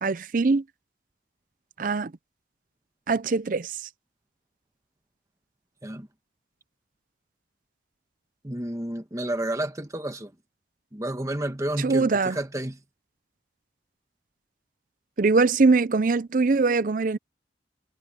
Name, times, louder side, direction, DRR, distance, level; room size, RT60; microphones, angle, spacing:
voice 1, 0.0-0.6 1.8-2.1 3.1-3.7 11.8-12.4 15.2-17.2, right 3 dB, 45° right, 0.5 m, -22 dB
voice 2, 8.4-10.3 10.9-12.8, right 1 dB, 20° right, 1.2 m, -30 dB
head